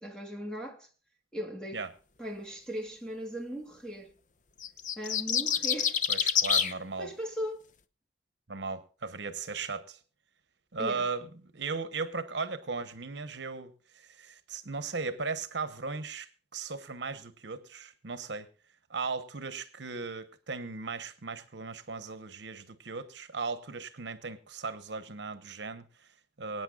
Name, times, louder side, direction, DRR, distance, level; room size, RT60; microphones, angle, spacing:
voice 1, 0.0-0.9 1.3-1.8 2.2-4.1 5.0-6.0 7.0-7.6 10.8-11.1, equal, 5° left, 2.4 m, -38 dB
sound 1, 4.6-6.7, left 8 dB, 40° left, 0.7 m, -27 dB
voice 2, 6.1-7.1 8.5-10.0 10.7-11.3 11.5-18.5 18.9-26.6, right 4 dB, 70° right, 1.0 m, -37 dB
24.5 x 9.1 x 2.4 m
head